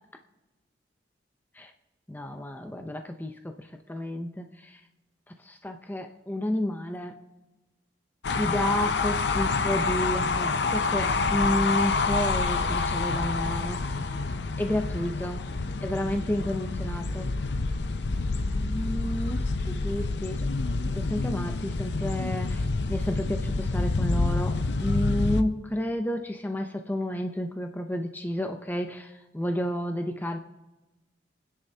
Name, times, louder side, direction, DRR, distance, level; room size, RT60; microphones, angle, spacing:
voice 1, 2.1-4.8 5.3-7.2 8.4-14.0 14.6-15.5 15.8-17.4 18.5-20.5 20.9-30.4, left 1 dB, 10° left, 5 dB, 0.6 m, -31 dB
sound 1, 8.2-25.4, left 3 dB, 65° left, 0.6 m, -27 dB
28.5 x 10.0 x 2.8 m, 1.1 s
head